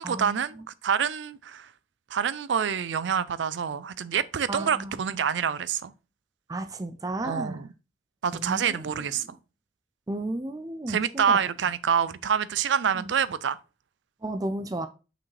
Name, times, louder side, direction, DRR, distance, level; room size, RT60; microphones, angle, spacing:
voice 1, 0.0-1.7 2.1-5.9 7.2-7.7 8.2-9.2 10.9-13.6, right 7 dB, 80° right, 0.4 m, -27 dB
voice 2, 4.5-4.9 6.5-7.6 8.3-8.8 10.1-11.4 13.0-13.1 14.2-14.9, right 2 dB, 20° right, 0.4 m, -33 dB
5.9 x 4.9 x 3.2 m
head